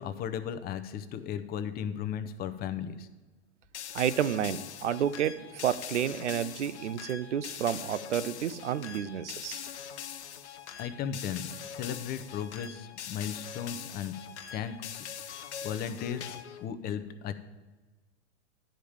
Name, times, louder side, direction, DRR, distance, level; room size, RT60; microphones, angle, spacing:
voice 1, 0.0-3.1 10.8-11.5 11.7-14.1 14.5-14.7 15.6-17.3, left 8 dB, 25° left, 11 dB, 0.7 m, -35 dB
sound 1, 3.7-16.6, left 9 dB, 70° left, 0.8 m, -42 dB
voice 2, 3.9-9.7, right 9 dB, 80° right, 15 dB, 0.6 m, -30 dB
10.5 x 5.1 x 7.1 m, 1.3 s
hypercardioid pair, 105°, 35 cm